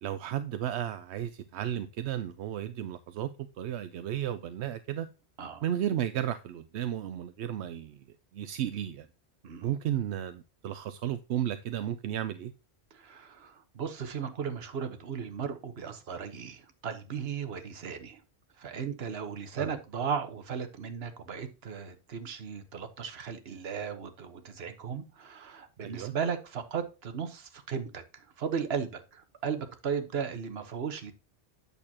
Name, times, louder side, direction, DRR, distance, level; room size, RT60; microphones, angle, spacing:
voice 1, 0.0-3.3 3.6-5.1 5.6-8.0 8.3-9.1 9.6-12.5 19.6-19.7 25.8-26.1, right 10 dB, 85° right, 0.9 m, -33 dB
voice 2, 12.9-18.2 18.6-31.1, right 6 dB, 70° right, 1.3 m, -36 dB
8.6 x 6.8 x 2.8 m
omnidirectional pair, 1.1 m